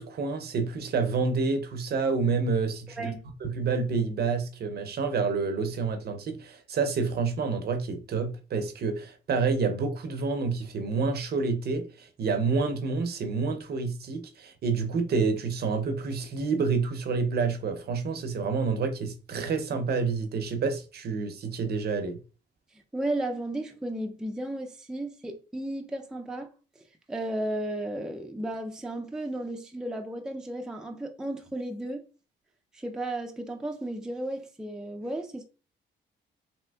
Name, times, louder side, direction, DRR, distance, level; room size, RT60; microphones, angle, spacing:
voice 1, 0.0-3.1 3.4-22.2, right 4 dB, 55° right, 0.6 m, -28 dB
voice 2, 3.0-3.3 22.7-32.0 32.7-35.4, right 1 dB, 5° right, 0.4 m, -34 dB
3.4 x 2.8 x 2.2 m
cardioid pair, 90°, 20 cm